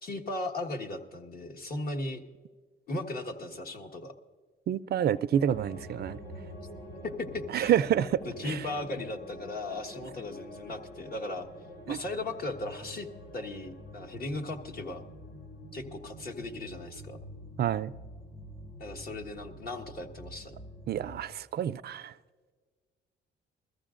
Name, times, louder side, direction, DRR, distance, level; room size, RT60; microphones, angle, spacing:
voice 1, 0.0-2.2 2.9-4.1 7.0-7.8 8.2-11.5 11.9-13.1 13.3-15.0 15.7-17.2 18.8-20.5, left 2 dB, 50° left, 1.4 m, -37 dB
voice 2, 4.7-6.2 7.5-8.6 11.9-12.0 17.6-17.9 20.9-22.1, right 10 dB, 55° right, 0.4 m, -28 dB
sound 1, 5.3-21.2, equal, 85° left, 3.7 m, -46 dB
21.5 x 14.5 x 2.5 m
cardioid pair, 90°, 20 cm